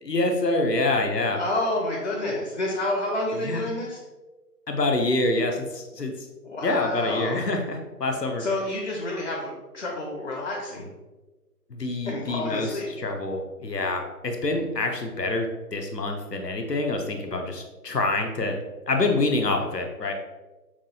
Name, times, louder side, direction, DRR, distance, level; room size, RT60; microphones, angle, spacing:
voice 1, 0.0-1.4 3.4-3.7 4.7-6.1 6.6-8.4 11.7-12.7 13.0-18.5 18.9-20.1, left 2 dB, 90° left, 3 dB, 0.8 m, -26 dB
voice 2, 1.3-4.0 6.4-7.5 8.4-10.9 12.0-12.9, left 1 dB, 45° left, -1 dB, 0.6 m, -29 dB
6.0 x 2.4 x 2.7 m, 1.2 s
figure-of-eight pair, 150°, 47 cm